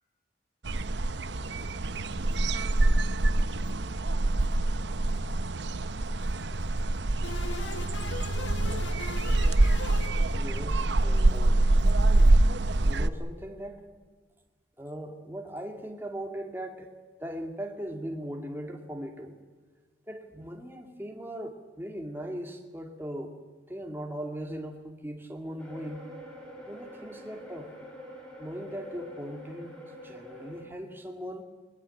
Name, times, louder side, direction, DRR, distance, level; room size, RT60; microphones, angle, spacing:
sound 1, 0.6-13.1, right 2 dB, 65° right, 0.8 m, -25 dB
sound 2, 7.2-10.8, left 4 dB, 70° left, 1.5 m, -41 dB
voice 1, 10.3-11.6 12.8-13.9 14.8-16.9 17.2-19.4 20.1-23.3 23.7-26.1 26.7-27.7 28.4-29.8 30.0-31.4, equal, 10° right, 3 dB, 2.2 m, -39 dB
sound 3, 25.6-30.6, left 1 dB, 5° left, 5.3 m, -45 dB
21.5 x 20.5 x 9.0 m, 1.4 s
head